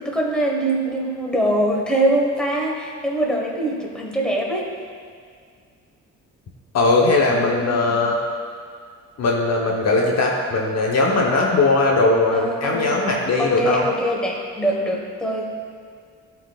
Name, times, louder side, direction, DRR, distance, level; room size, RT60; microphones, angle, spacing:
voice 1, 0.0-4.7 7.3-8.0 12.3-13.0 13.4-15.5, right 1 dB, 5° left, -2 dB, 1.4 m, -23 dB
voice 2, 6.7-8.2 9.2-13.9, left 2 dB, 60° left, -1 dB, 1.0 m, -19 dB
13.5 x 4.6 x 2.4 m, 2.1 s
cardioid pair, 90°, 30 cm